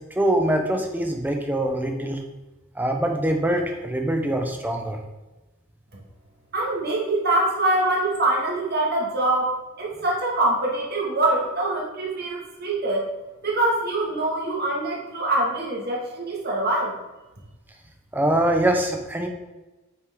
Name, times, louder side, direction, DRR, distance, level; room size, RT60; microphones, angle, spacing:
voice 1, 0.1-2.2 2.8-5.0 18.1-19.3, right 1 dB, 10° right, 3 dB, 1.0 m, -23 dB
voice 2, 6.5-13.1 13.4-17.0, right 2 dB, 45° right, -2 dB, 2.3 m, -24 dB
8.4 x 6.3 x 3.9 m, 1.1 s
head